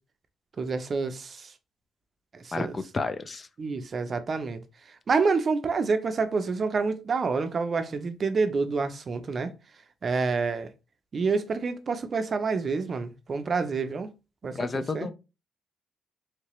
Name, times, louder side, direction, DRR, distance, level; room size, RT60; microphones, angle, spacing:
voice 1, 0.6-1.5 2.3-2.7 3.6-4.6 5.1-9.5 10.0-10.7 11.1-14.1 14.4-15.1, right 4 dB, 45° right, 0.5 m, -28 dB
voice 2, 2.5-3.5 14.5-15.1, left 3 dB, 35° left, 0.4 m, -31 dB
3.2 x 2.9 x 3.0 m
cardioid pair, 90°, 0 cm